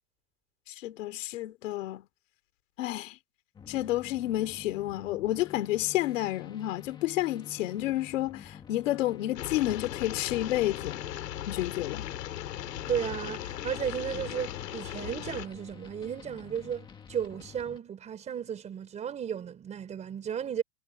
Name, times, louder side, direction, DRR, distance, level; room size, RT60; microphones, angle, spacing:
voice 1, 0.7-2.1 2.8-3.2 3.7-11.0 11.5-12.1, left 15 dB, 50° left, 3.4 m, -30 dB
sound 1, 3.5-17.8, left 8 dB, 10° left, 1.7 m, -49 dB
sound 2, 9.4-15.5, left 13 dB, 85° left, 3.4 m, -38 dB
voice 2, 12.9-20.6, right 8 dB, 15° right, 4.3 m, -34 dB
supercardioid pair, 175°, 47 cm